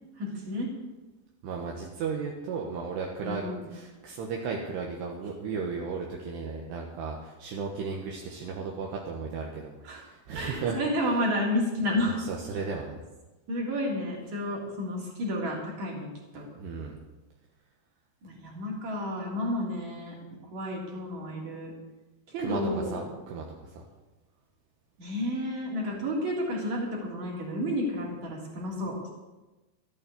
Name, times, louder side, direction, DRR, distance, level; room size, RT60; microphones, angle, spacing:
voice 1, 0.2-0.7 3.2-3.6 9.8-10.0 10.3-12.2 13.5-16.5 18.2-20.2 20.5-21.7 22.3-23.1 25.0-29.1, left 1 dB, 45° right, -2 dB, 4.4 m, -31 dB
voice 2, 1.4-3.4 3.7-10.8 12.0-13.0 16.6-17.0 22.4-22.6 22.9-23.5 23.8-23.9, right 5 dB, 75° right, 0 dB, 3.2 m, -35 dB
13.5 x 8.8 x 8.4 m, 1.1 s
omnidirectional pair, 5.1 m